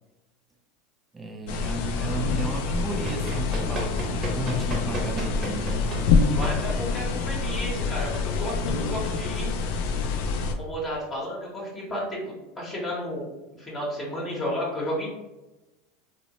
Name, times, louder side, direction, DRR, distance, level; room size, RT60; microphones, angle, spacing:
voice 1, 1.1-5.8, right 2 dB, 15° right, 3 dB, 0.4 m, -33 dB
sound 1, 1.5-10.5, left 4 dB, 65° left, 0.3 m, -26 dB
Run, 3.1-9.1, right 1 dB, 30° right, 0.8 m, -36 dB
voice 2, 6.2-9.6 10.6-13.3 13.6-15.1, equal, 25° left, -4 dB, 0.8 m, -32 dB
2.8 x 2.1 x 2.8 m, 1.0 s
supercardioid pair, 110°, 0 cm